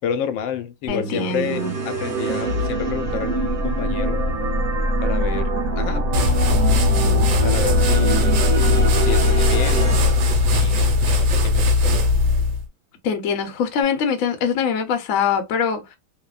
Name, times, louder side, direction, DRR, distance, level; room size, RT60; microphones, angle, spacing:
voice 1, 0.0-4.2 5.0-6.0 7.4-8.5 9.0-11.9, left 8 dB, 85° left, 1.3 m, -30 dB
voice 2, 0.9-1.7 13.0-16.0, left 6 dB, 60° left, 0.9 m, -23 dB
Bass guitar, 0.9-7.1, right 3 dB, 70° right, 0.8 m, -40 dB
sound 1, 1.0-11.3, right 2 dB, 35° right, 1.2 m, -24 dB
sound 2, 6.1-12.6, left 3 dB, 90° right, 1.4 m, -18 dB
3.2 x 2.1 x 2.3 m
omnidirectional pair, 2.0 m